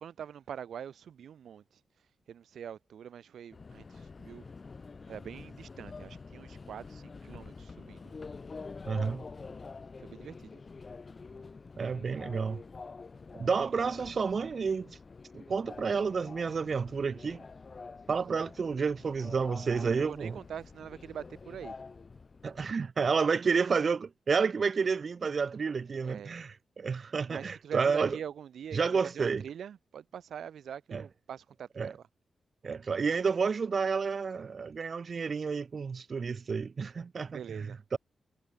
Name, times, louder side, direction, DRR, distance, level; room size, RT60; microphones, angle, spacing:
voice 1, 0.0-1.6 2.3-4.4 5.1-8.0 10.0-10.6 19.8-21.8 26.0-26.3 27.2-28.8 29.1-32.0 37.2-37.8, right 8 dB, 85° right, 7.5 m, -44 dB
Subway metro underground, 3.5-22.8, left 4 dB, 35° left, 7.7 m, -47 dB
voice 2, 8.9-9.2 11.8-12.6 13.3-15.0 15.3-17.4 18.1-20.4 22.4-28.2 28.7-29.4 30.9-31.0 31.8-31.9 32.6-38.0, right 5 dB, 45° right, 4.6 m, -30 dB
wide cardioid pair, 140°, 0 cm